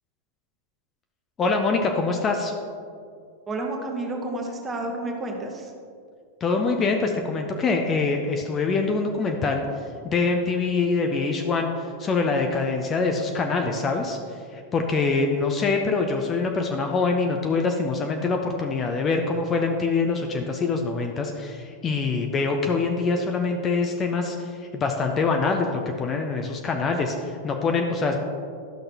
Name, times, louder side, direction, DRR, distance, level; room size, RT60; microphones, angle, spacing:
voice 1, 1.4-2.5 6.4-9.6 10.0-14.2 14.5-28.2, left 4 dB, 25° left, 3 dB, 0.6 m, -24 dB
voice 2, 3.5-5.7, right 2 dB, 20° right, 1 dB, 1.2 m, -30 dB
11.5 x 6.4 x 2.9 m, 2.3 s
figure-of-eight pair, 90°, 0 cm